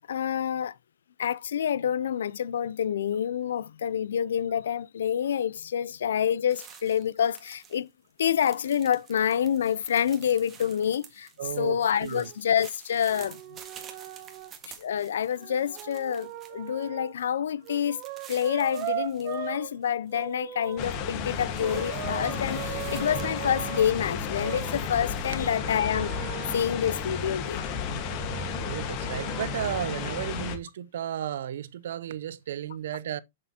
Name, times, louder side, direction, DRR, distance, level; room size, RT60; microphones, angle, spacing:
voice 1, 0.1-0.7 1.2-7.9 8.2-11.3 11.6-13.4 14.6-18.0 18.3-26.1 26.5-27.6, left 9 dB, 80° left, 0.4 m, -27 dB
sound 1, 6.5-7.8 8.1-16.8 17.2-17.3 17.6-19.4 19.7-20.2 20.6-25.2, right 8 dB, 25° right, 1.7 m, -51 dB
voice 2, 11.4-12.3 28.6-33.2, right 10 dB, 70° right, 0.6 m, -34 dB
sound 2, 12.2-12.4 13.1-14.5 15.4-17.1 17.6-19.7 20.1-20.9 21.6-23.9 24.4-26.7 27.5-29.5, right 12 dB, 45° right, 1.0 m, -39 dB
sound 3, 20.8-30.6, left 6 dB, 45° left, 1.5 m, -33 dB
6.9 x 6.5 x 2.9 m
hypercardioid pair, 120°, 0 cm